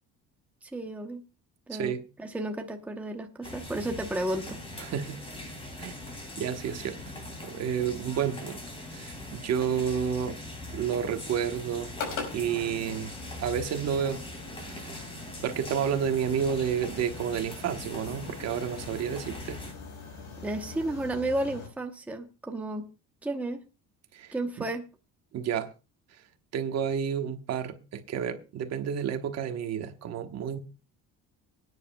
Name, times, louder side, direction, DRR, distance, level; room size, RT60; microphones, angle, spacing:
voice 1, 0.6-1.2 1.7-1.9 2.2-4.6 20.4-22.9 23.2-23.6 24.3-24.8, right 1 dB, 5° right, 0.9 m, -32 dB
voice 2, 1.7-2.0 4.8-5.2 5.8-6.0 6.4-7.0 7.4-8.6 8.9-10.4 10.7-11.9 12.3-13.1 13.4-14.2 14.7-15.0 15.4-19.6 24.1-24.3 25.3-25.7 26.5-30.6, right 8 dB, 55° right, 1.2 m, -30 dB
sound 1, 3.4-19.7, left 1 dB, 15° left, 2.8 m, -41 dB
sound 2, 9.9-21.7, left 5 dB, 75° left, 5.1 m, -44 dB
25.0 x 9.6 x 2.3 m
cardioid pair, 165°, 32 cm